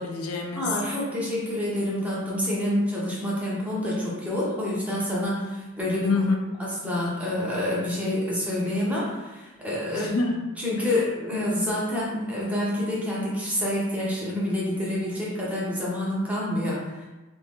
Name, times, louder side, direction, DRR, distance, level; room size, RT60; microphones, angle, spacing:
voice 1, 0.0-0.8 6.0-6.7 9.9-10.9, left 3 dB, 90° left, 2 dB, 0.5 m, -28 dB
voice 2, 0.6-6.1 6.8-10.1 10.6-17.1, left 1 dB, 5° right, -6 dB, 0.7 m, -27 dB
2.7 x 2.5 x 3.5 m, 1.1 s
head